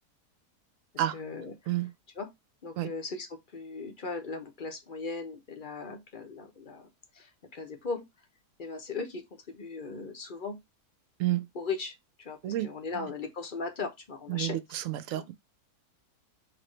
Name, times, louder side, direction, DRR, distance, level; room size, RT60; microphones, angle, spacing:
voice 1, 0.9-1.5 2.2-2.3 2.6-6.9 7.1-8.0 8.6-10.6 11.5-14.6 15.1-15.3, left 4 dB, 40° left, 0.7 m, -38 dB
voice 2, 12.4-13.1 14.3-15.3, right 14 dB, 65° right, 0.9 m, -31 dB
5.8 x 2.8 x 3.1 m
omnidirectional pair, 1.7 m